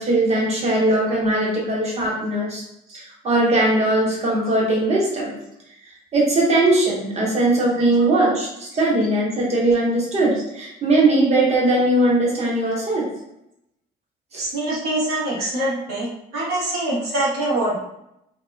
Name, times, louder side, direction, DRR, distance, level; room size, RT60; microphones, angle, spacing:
voice 1, 0.0-2.6 2.9-5.3 6.1-13.1 14.3-14.4, right 2 dB, 40° right, -3 dB, 1.0 m, -20 dB
voice 2, 14.4-16.1 16.3-17.8, right 1 dB, 75° right, -6 dB, 1.1 m, -24 dB
2.9 x 2.0 x 2.2 m, 0.81 s
cardioid pair, 110°, 17 cm